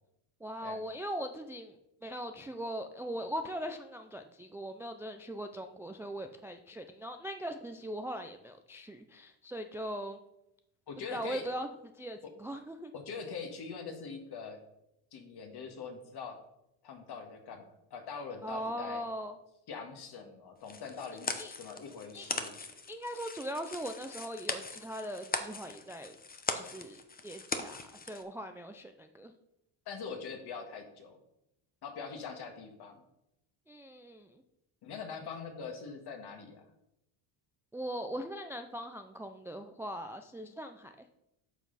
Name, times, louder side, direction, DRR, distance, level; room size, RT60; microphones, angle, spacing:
voice 1, 0.4-1.8 2.0-10.2 11.1-11.7 12.0-12.9 18.4-19.3 21.4-21.5 22.1-22.3 22.9-26.2 26.5-29.3 33.7-34.3 37.7-40.9, equal, 5° right, 6 dB, 0.3 m, -40 dB
voice 2, 10.9-11.4 12.2-12.3 12.9-14.6 15.1-16.4 16.8-17.6 17.9-19.1 19.7-21.3 21.6-22.6 29.9-31.2 31.8-33.0 34.8-36.7, left 5 dB, 55° left, 5 dB, 1.8 m, -43 dB
sound 1, 20.6-28.2, left 4 dB, 20° left, 0.8 m, -40 dB
9.3 x 5.9 x 4.1 m, 0.84 s
cardioid pair, 105°, 47 cm